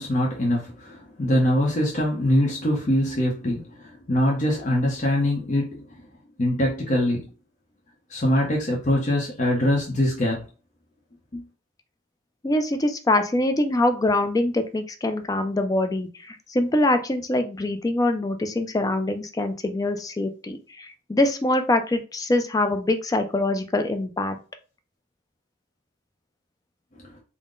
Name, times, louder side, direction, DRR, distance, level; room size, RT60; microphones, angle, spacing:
voice 1, 0.0-6.0 6.4-7.3 8.1-10.4 11.3-11.4 27.0-27.1, left 1 dB, 40° left, 0.7 m, -23 dB
voice 2, 12.4-24.4, left 1 dB, 20° left, 0.3 m, -24 dB
3.7 x 2.0 x 3.7 m
head